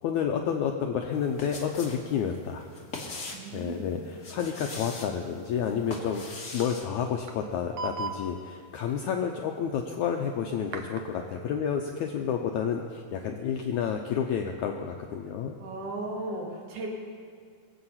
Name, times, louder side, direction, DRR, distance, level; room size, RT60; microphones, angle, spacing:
voice 1, 0.0-2.6 3.5-15.6, left 7 dB, 90° left, 3 dB, 1.7 m, -30 dB
sound 1, 1.1-2.0 2.3-3.5 4.1-5.1 5.6-6.8, left 3 dB, 45° left, 1.0 m, -40 dB
voice 2, 3.3-4.0 15.6-16.9, right 2 dB, 60° right, -1 dB, 3.4 m, -36 dB
sound 2, 5.9-6.0 6.3-6.4 6.6-6.7 7.3-7.4 7.8-8.2 10.7-11.1, right 4 dB, 75° right, 1.4 m, -35 dB
24.0 x 8.2 x 5.7 m, 2.2 s
omnidirectional pair, 4.3 m